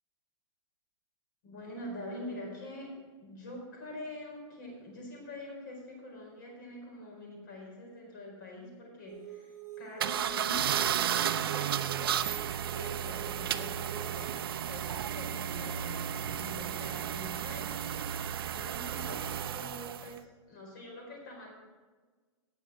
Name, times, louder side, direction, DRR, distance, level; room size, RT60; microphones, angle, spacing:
voice 1, 1.4-12.2 12.7-14.4 14.7-17.8 18.5-21.6, left 1 dB, 40° left, 0 dB, 4.4 m, -45 dB
sound 1, 9.1-14.2, right 11 dB, 15° right, 3.4 m, -46 dB
sound 2, 10.0-20.1, right 10 dB, 50° right, 0.5 m, -33 dB
18.5 x 6.3 x 4.8 m, 1.4 s
hypercardioid pair, 180°, 16 cm